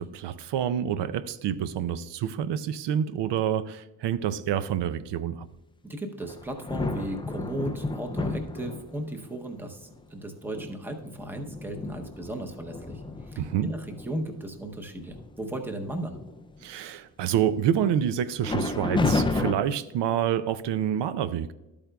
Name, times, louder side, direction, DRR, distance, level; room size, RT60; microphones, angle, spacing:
voice 1, 0.0-5.5 13.4-13.7 16.6-21.5, right 9 dB, 75° right, 14 dB, 0.5 m, -28 dB
voice 2, 5.8-16.2, right 1 dB, 5° right, 4 dB, 0.7 m, -36 dB
sound 1, 6.2-9.2 9.9-10.0 10.5-14.1 14.6-14.7 15.1-15.5 15.8-16.6 18.4-19.5, left 3 dB, 15° left, 0.3 m, -31 dB
12.0 x 8.5 x 2.3 m, 1.0 s
wide cardioid pair, 165°, 43 cm